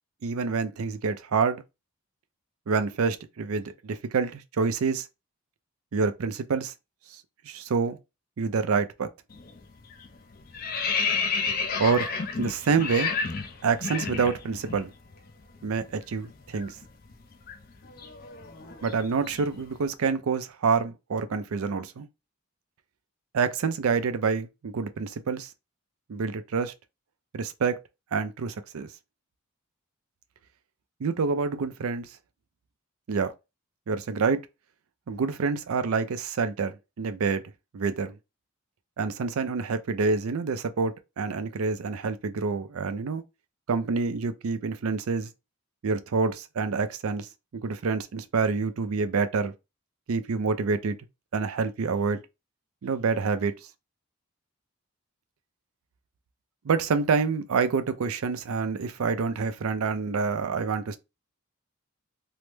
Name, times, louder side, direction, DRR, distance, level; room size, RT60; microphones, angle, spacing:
voice 1, 0.2-1.6 2.7-5.1 5.9-6.7 7.5-8.0 8.4-9.1 11.8-12.1 12.4-13.1 13.6-14.9 15.6-16.7 18.8-22.1 23.3-25.5 26.1-26.7 27.3-27.8 28.1-28.9 31.0-32.1 33.1-33.3 33.9-34.4 35.1-37.4 37.7-38.2 39.0-43.2 43.7-45.3 45.8-47.3 47.5-49.5 50.1-51.0 51.3-52.2 52.8-53.5 56.6-61.0, right 5 dB, 80° right, 0.4 m, -27 dB
sound 1, 9.3-9.6 9.9-14.8 15.1-15.3 15.6-19.7, left 5 dB, 40° left, 0.4 m, -31 dB
3.2 x 2.0 x 3.2 m
head